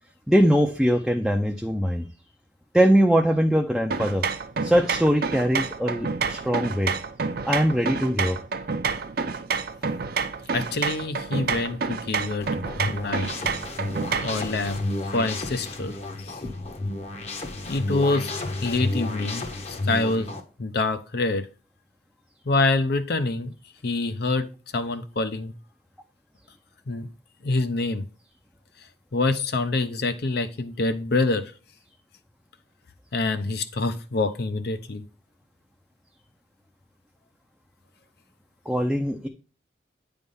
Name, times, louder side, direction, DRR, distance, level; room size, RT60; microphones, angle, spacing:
voice 1, 0.3-2.1 2.7-4.2 4.6-6.9 7.4-8.4 14.1-14.4 38.7-39.3, equal, ahead, 2 dB, 0.5 m, -22 dB
sound 1, 3.9-14.4, right 5 dB, 60° right, 0.6 m, -29 dB
voice 2, 10.5-12.5 12.9-13.3 14.2-14.8 15.1-16.4 17.7-18.3 18.6-20.3 20.6-21.5 22.4-23.5 23.8-24.5 24.7-25.5 26.9-27.1 27.4-28.0 29.1-31.5 33.1-35.0, left 3 dB, 65° left, 11 dB, 0.7 m, -26 dB
sound 2, 12.4-20.4, left 2 dB, 40° left, 1.0 m, -31 dB
9.2 x 3.5 x 5.4 m, 0.36 s
head